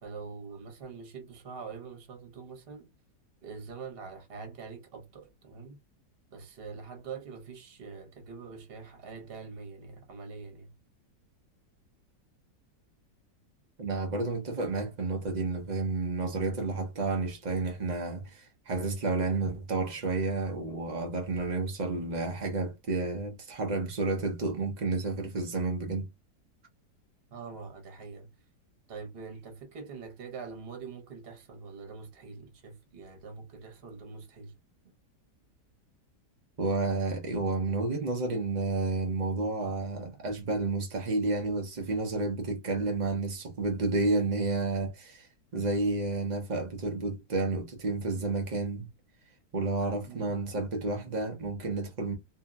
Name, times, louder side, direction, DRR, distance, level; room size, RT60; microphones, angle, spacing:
voice 1, 0.0-2.9 3.4-5.8 6.3-10.8 27.3-28.3 28.9-34.6 50.1-50.3, right 5 dB, 40° right, 0.9 m, -44 dB
voice 2, 13.8-26.1 36.6-48.9 49.5-52.1, right 3 dB, 85° right, 0.4 m, -31 dB
2.7 x 2.7 x 2.3 m
omnidirectional pair, 1.9 m